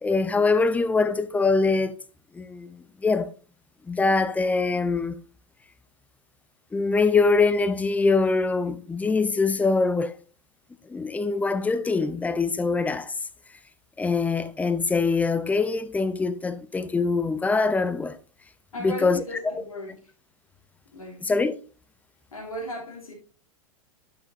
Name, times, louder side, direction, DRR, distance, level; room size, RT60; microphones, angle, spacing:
voice 1, 0.0-2.0 2.3-3.3 3.9-5.2 6.7-10.1 10.9-13.1 14.0-18.2 18.8-19.2 19.5-19.6 21.2-21.5, left 4 dB, 10° left, 0.5 m, -23 dB
voice 2, 18.7-20.0 20.9-21.3 22.3-23.1, left 1 dB, 80° left, 3.0 m, -36 dB
11.0 x 5.9 x 2.6 m
figure-of-eight pair, 100°, 18 cm